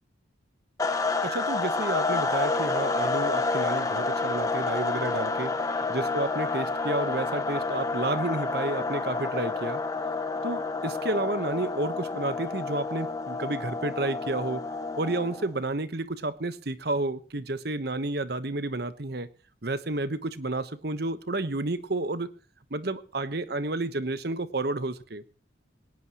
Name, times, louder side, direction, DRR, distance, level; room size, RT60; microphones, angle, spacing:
sound 1, 0.8-15.5, left 3 dB, 15° left, 1.2 m, -29 dB
voice 1, 1.2-5.5 5.9-9.8 10.4-14.6 15.0-19.3 19.6-22.3 22.7-25.2, right 2 dB, 55° right, 1.1 m, -31 dB
20.0 x 18.5 x 3.0 m
head